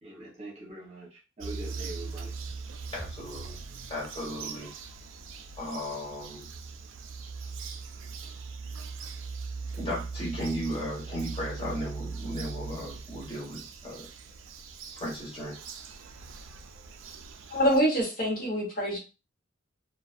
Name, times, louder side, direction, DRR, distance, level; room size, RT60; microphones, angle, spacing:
voice 1, 0.0-2.3, right 1 dB, 35° right, -4 dB, 0.9 m, -43 dB
Bird vocalization bird call bird song, 1.4-17.8, right 4 dB, 70° right, 0.4 m, -40 dB
voice 2, 2.9-3.6 3.9-4.7 5.6-6.5 9.8-14.1 15.0-15.6, equal, 30° left, -5 dB, 1.3 m, -35 dB
voice 3, 17.5-19.0, equal, 45° left, -3 dB, 1.0 m, -25 dB
2.4 x 2.3 x 2.4 m, 0.31 s
head